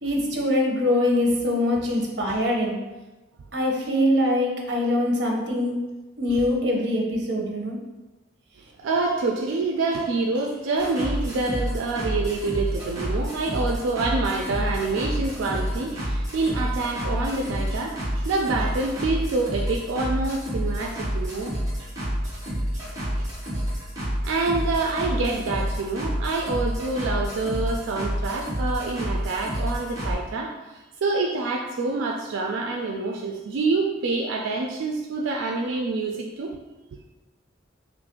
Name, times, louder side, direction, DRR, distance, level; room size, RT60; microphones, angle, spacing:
voice 1, 0.0-2.8 3.5-5.7 6.2-7.8, left 1 dB, 60° right, -1 dB, 0.7 m, -23 dB
voice 2, 8.8-21.9 22.2-22.3 22.7-22.8 23.2-23.3 24.2-36.6, right 3 dB, 85° right, 1 dB, 0.3 m, -27 dB
sound 1, 10.8-30.1, equal, 15° right, 0.9 m, -29 dB
3.1 x 2.5 x 3.6 m, 1.1 s
head